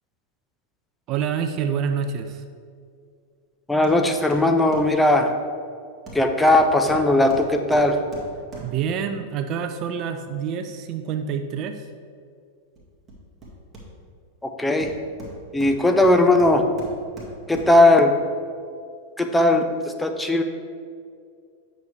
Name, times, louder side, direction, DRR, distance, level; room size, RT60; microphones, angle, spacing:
voice 1, 1.1-2.4 8.6-11.9, right 7 dB, 40° right, 8 dB, 0.4 m, -27 dB
voice 2, 3.7-5.3 6.1-8.0 14.4-14.9 15.5-16.6 17.5-18.1 19.2-19.7 20.0-20.4, left 2 dB, 5° left, 5 dB, 0.6 m, -18 dB
Hammer, 3.8-4.0 4.3-5.0 6.1-9.0 12.8-14.2 14.8-17.9 18.4-18.5, right 1 dB, 20° right, 1.8 m, -41 dB
8.2 x 6.2 x 3.3 m, 2.2 s
figure-of-eight pair, 90°, 0 cm